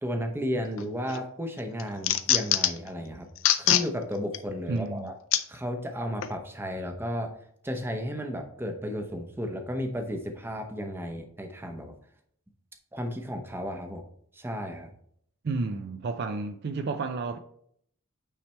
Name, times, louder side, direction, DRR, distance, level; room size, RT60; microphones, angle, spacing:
voice 1, 0.0-3.3 3.6-5.1 5.5-7.3 7.6-11.9 12.9-14.0 14.3-14.9, equal, 10° right, 0.7 m, -33 dB
sound 1, 0.8-1.2 1.6-2.9 3.4-3.9 4.3-4.4 5.3-5.4 6.2-6.3, left 12 dB, 60° left, 0.5 m, -23 dB
voice 2, 4.7-5.1 15.4-17.4, right 3 dB, 50° right, 0.4 m, -31 dB
8.7 x 3.3 x 4.3 m
head